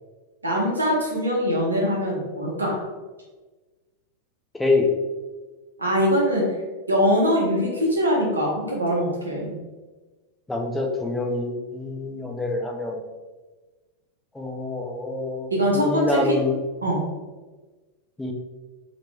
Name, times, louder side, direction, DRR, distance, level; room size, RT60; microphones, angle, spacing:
voice 1, 0.4-2.8 5.8-6.4 6.9-9.5 15.5-16.4 16.8-17.0, equal, 80° right, -2 dB, 0.9 m, -22 dB
voice 2, 4.5-4.9 10.5-13.1 14.3-16.6 18.2-18.3, left 2 dB, 10° left, 2 dB, 0.5 m, -26 dB
3.0 x 2.9 x 3.3 m, 1.3 s
figure-of-eight pair, 90°, 0 cm